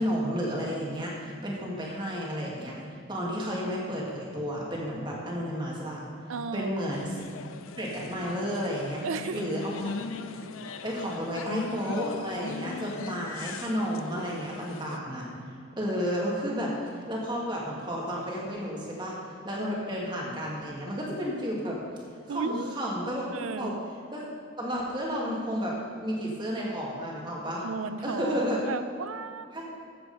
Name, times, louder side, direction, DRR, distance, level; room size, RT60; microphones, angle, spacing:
voice 1, 0.0-2.8 3.1-6.0 6.5-7.2 7.8-9.0 9.3-9.9 10.4-10.5 10.8-15.3 15.8-16.7 17.1-19.2 19.4-21.8 22.3-23.3 23.6-23.7 24.1-24.3 24.6-27.7 28.0-28.6 29.5-29.6, equal, 20° right, -4 dB, 2.0 m, -32 dB
voice 2, 6.3-6.8 9.0-9.4 10.4-10.5 22.3-22.7 23.3-23.9 27.6-29.5, right 4 dB, 80° right, 11 dB, 0.5 m, -34 dB
sound 1, 6.9-15.0, left 4 dB, 80° left, 0.5 m, -40 dB
14.5 x 7.8 x 4.2 m, 2.5 s
head